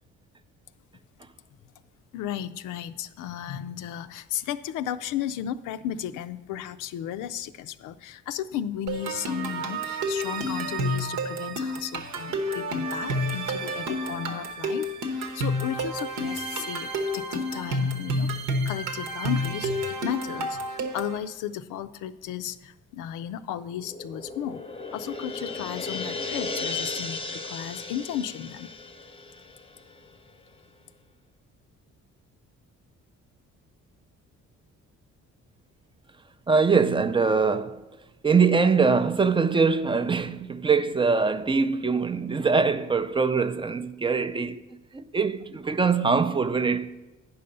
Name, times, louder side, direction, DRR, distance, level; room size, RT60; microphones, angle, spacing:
voice 1, 2.1-18.3 18.6-24.6 24.9-28.7, left 10 dB, 90° left, 0.5 m, -34 dB
sound 1, 8.9-21.2, equal, 80° right, 1.2 m, -30 dB
sound 2, 23.7-30.3, left 3 dB, 20° left, 0.7 m, -35 dB
voice 2, 36.5-37.9 38.2-44.6 44.9-47.0, right 5 dB, 15° right, 0.4 m, -23 dB
9.4 x 5.5 x 5.3 m
cardioid pair, 90°, 30 cm